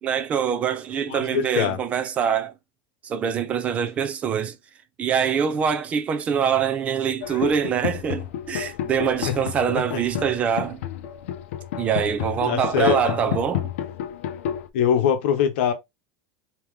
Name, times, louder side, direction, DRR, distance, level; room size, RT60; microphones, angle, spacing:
voice 1, 0.0-2.5 3.0-4.6 5.0-10.8 11.8-13.7, right 7 dB, 20° right, 0.4 m, -24 dB
voice 2, 1.1-1.8 9.9-10.0 12.4-13.1 14.7-15.7, left 8 dB, 65° left, 0.9 m, -22 dB
sound 1, 7.2-14.7, left 10 dB, 85° left, 0.6 m, -30 dB
3.6 x 2.9 x 3.2 m
supercardioid pair, 175°, 7 cm